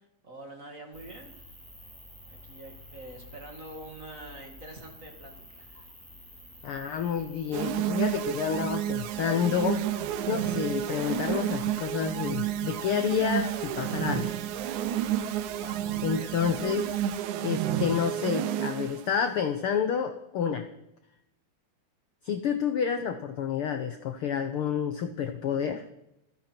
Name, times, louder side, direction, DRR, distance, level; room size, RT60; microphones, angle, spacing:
voice 1, 0.2-1.4 2.3-5.9 6.6-6.7 15.5-16.4, right 1 dB, 30° right, 2 dB, 2.2 m, -46 dB
sound 1, 0.9-17.2, left 1 dB, ahead, 2.3 m, -50 dB
voice 2, 6.6-9.8 10.3-14.3 16.0-17.0 17.4-20.6 22.2-25.8, left 7 dB, 65° left, 7 dB, 1.4 m, -29 dB
sound 2, 7.5-19.1, right 11 dB, 80° right, 2.1 m, -30 dB
29.0 x 10.0 x 4.5 m, 0.85 s
omnidirectional pair, 3.4 m